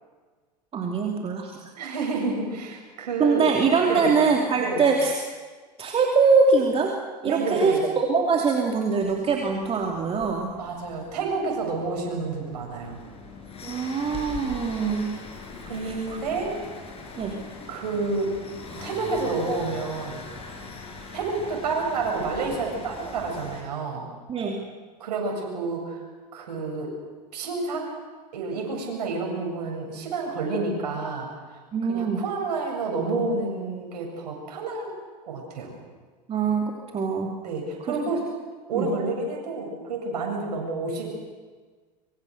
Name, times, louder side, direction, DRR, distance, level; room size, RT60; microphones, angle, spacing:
voice 1, 0.7-1.6 3.2-5.2 5.8-7.0 7.2-10.5 13.6-15.1 15.8-16.2 17.2-17.4 24.3-24.6 31.7-32.2 36.3-37.3 38.8-38.9, right 5 dB, 25° right, 1 dB, 2.8 m, -23 dB
voice 2, 1.7-3.4 3.9-4.1 4.6-4.8 7.2-7.8 10.6-13.0 15.7-16.6 17.7-18.4 18.8-20.2 21.1-24.1 25.0-26.0 26.3-26.9 27.3-27.9 28.3-31.3 31.9-34.9 35.3-35.7 37.4-38.2 38.7-41.1, right 3 dB, 70° right, 1 dB, 7.7 m, -29 dB
sound 1, 9.0-23.6, left 4 dB, 30° left, 6.4 m, -41 dB
25.0 x 24.0 x 6.6 m, 1.4 s
hypercardioid pair, 90°, 21 cm